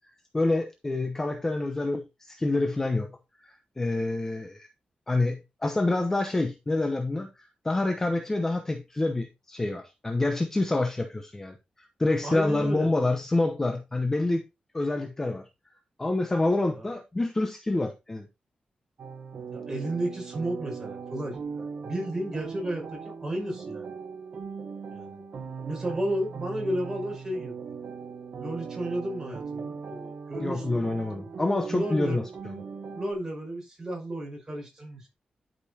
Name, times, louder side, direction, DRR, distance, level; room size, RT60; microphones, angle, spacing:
voice 1, 0.3-4.7 5.1-14.4 14.7-15.5 16.0-18.3 30.4-32.6, left 2 dB, 15° left, 0.8 m, -27 dB
voice 2, 12.2-12.9 16.7-16.9 19.5-21.4 21.8-23.8 24.9-25.2 25.6-27.6 28.4-31.0 31.7-32.3 32.9-35.1, right 1 dB, 20° right, 5.2 m, -33 dB
sound 1, 19.0-33.1, right 5 dB, 60° right, 1.1 m, -39 dB
11.5 x 5.3 x 2.8 m
wide cardioid pair, 165°, 3 cm